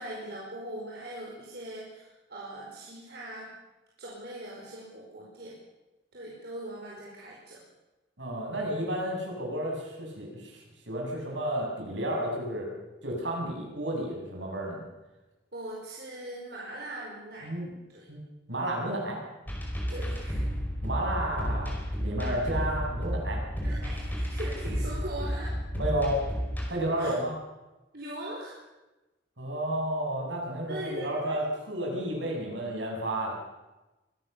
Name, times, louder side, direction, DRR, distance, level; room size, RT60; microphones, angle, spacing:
voice 1, 0.0-3.5 4.0-5.6 6.1-7.6 15.5-17.5 17.9-18.1 19.9-20.4 23.6-25.6 27.0-27.2 27.9-28.6 30.7-31.3, right 1 dB, 55° right, -4 dB, 5.1 m, -40 dB
voice 2, 8.2-12.7 13.0-14.8 17.4-17.7 18.1-18.2 18.5-19.2 20.8-23.4 25.8-26.2 26.7-27.4 29.4-33.4, right 1 dB, 75° right, -1 dB, 7.9 m, -32 dB
sound 1, 19.5-26.7, equal, 10° left, 4.6 m, -32 dB
23.5 x 17.0 x 7.0 m, 1.1 s
head